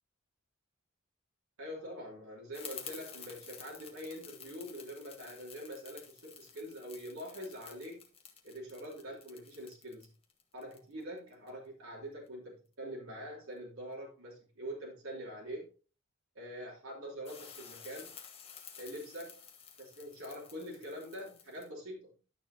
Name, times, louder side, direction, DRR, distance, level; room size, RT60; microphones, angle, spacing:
voice 1, 1.6-8.1 8.4-10.1 10.5-15.7 16.3-18.2 18.8-19.5 19.8-22.1, equal, 70° right, 3.1 m, -44 dB
sound 1, 2.5-11.5 17.3-21.7, left 7 dB, 25° left, 1.1 m, -51 dB
11.5 x 6.8 x 2.8 m
head